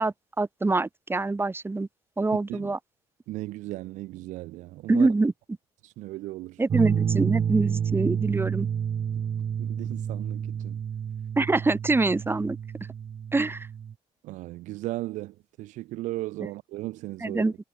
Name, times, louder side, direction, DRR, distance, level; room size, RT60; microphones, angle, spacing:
voice 1, 0.0-1.9 2.2-2.8 4.9-5.3 6.6-8.7 11.4-12.6 13.3-13.7 16.4-16.5 17.2-17.5, right 3 dB, 20° right, 6.5 m, -25 dB
voice 2, 3.3-5.1 5.8-6.6 9.6-10.8 14.2-17.4, right 18 dB, 85° right, 6.6 m, -36 dB
sound 1, 6.7-13.9, right 8 dB, 50° right, 4.6 m, -29 dB
cardioid pair, 95°, 12 cm